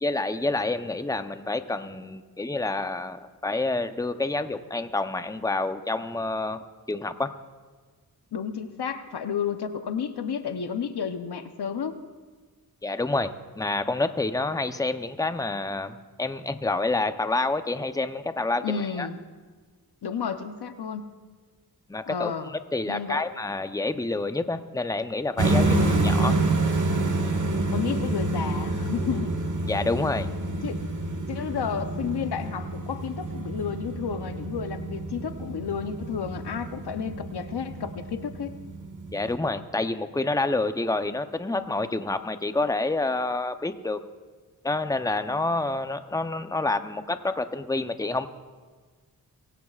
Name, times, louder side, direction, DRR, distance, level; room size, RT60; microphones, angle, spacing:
voice 1, 0.0-7.3 12.8-19.1 21.9-25.8 26.0-26.4 29.7-30.3 39.1-44.0 44.6-48.3, left 2 dB, 10° left, 9 dB, 0.7 m, -28 dB
voice 2, 8.3-12.0 18.6-19.2 20.0-21.0 22.1-22.5 22.8-23.2 25.7-26.1 27.7-29.3 30.6-30.8 31.3-38.5, left 7 dB, 90° left, 9 dB, 0.8 m, -31 dB
sound 1, 25.4-39.4, right 2 dB, 50° right, 1.6 m, -28 dB
24.0 x 16.0 x 2.4 m, 1.4 s
cardioid pair, 50°, 38 cm